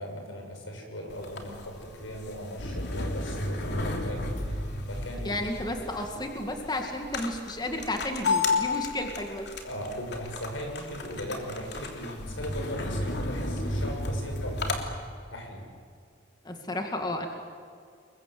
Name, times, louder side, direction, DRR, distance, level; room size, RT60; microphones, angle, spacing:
voice 1, 0.0-4.2 4.9-5.3 9.6-14.8 15.3-15.7, equal, 90° left, 2 dB, 6.6 m, -38 dB
sound 1, 1.1-14.8, left 2 dB, 60° left, 3.2 m, -33 dB
voice 2, 5.2-9.5 16.4-17.3, left 1 dB, 20° left, 3 dB, 2.1 m, -32 dB
28.5 x 22.5 x 7.8 m, 2.2 s
head